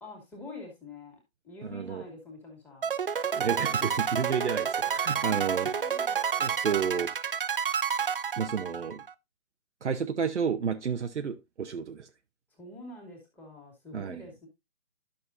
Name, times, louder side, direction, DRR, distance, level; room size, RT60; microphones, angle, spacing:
voice 1, 0.0-1.2 1.4-2.9 5.1-6.2 12.6-14.5, left 2 dB, 5° left, 2.2 m, -46 dB
voice 2, 1.6-2.0 3.3-5.7 6.4-7.1 8.4-9.0 9.8-12.1 13.9-14.2, right 6 dB, 60° right, 0.9 m, -31 dB
sound 1, 2.8-9.1, right 7 dB, 45° right, 0.5 m, -29 dB
11.5 x 6.4 x 2.6 m
figure-of-eight pair, 155°, 39 cm